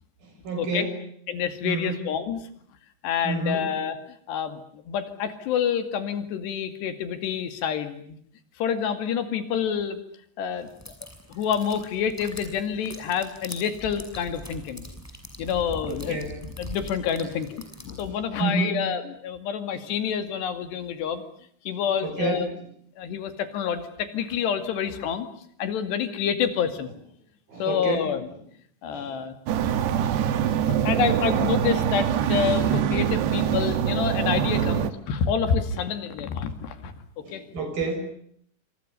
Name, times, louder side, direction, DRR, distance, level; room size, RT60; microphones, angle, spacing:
voice 1, 0.2-1.0 1.6-2.0 3.2-3.7 15.9-16.4 17.2-17.3 18.4-18.8 22.0-22.5 27.5-28.1 28.9-29.2 29.6-29.9 34.5-34.8 37.2-38.0, right 3 dB, 60° right, 6 dB, 8.7 m, -30 dB
voice 2, 1.3-2.4 3.0-4.0 4.3-8.2 8.6-10.0 10.4-10.7 11.3-14.9 15.4-21.2 21.7-22.5 23.0-25.3 25.6-26.9 27.6-28.3 28.8-29.3 29.8-30.1 30.5-36.9 37.3-37.4, left 7 dB, 90° left, 9 dB, 4.5 m, -28 dB
sound 1, 10.7-18.1, equal, 5° left, 5.7 m, -42 dB
sound 2, 29.5-34.9, right 9 dB, 85° right, 3.6 m, -24 dB
28.0 x 26.5 x 6.8 m, 0.65 s
omnidirectional pair, 4.7 m